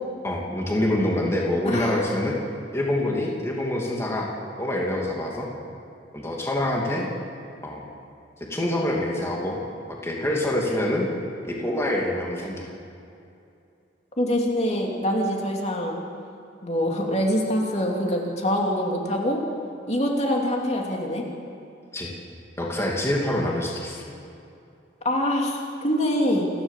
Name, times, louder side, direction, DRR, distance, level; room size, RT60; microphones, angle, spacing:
voice 1, 0.2-2.4 2.7-4.3 4.6-5.5 6.1-7.1 7.6-7.8 8.5-9.6 9.9-11.1 11.4-12.7 21.9-22.1 22.6-24.0, left 1 dB, 15° left, -2 dB, 2.7 m, -26 dB
voice 2, 1.7-2.1 14.2-16.0 16.6-19.4 19.9-21.2 25.0-26.5, equal, 35° left, 0 dB, 2.9 m, -24 dB
29.0 x 12.0 x 7.4 m, 2.6 s
head